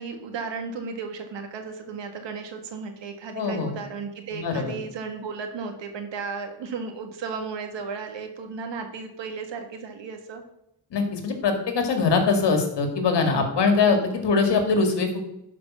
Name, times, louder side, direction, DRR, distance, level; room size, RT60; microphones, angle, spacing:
voice 1, 0.0-10.4 13.8-14.0, right 5 dB, 85° right, 5 dB, 1.8 m, -35 dB
voice 2, 3.4-3.7 4.3-4.8 10.9-15.2, left 4 dB, 70° left, 5 dB, 2.2 m, -22 dB
11.5 x 5.1 x 6.2 m, 0.82 s
cardioid pair, 95°, 43 cm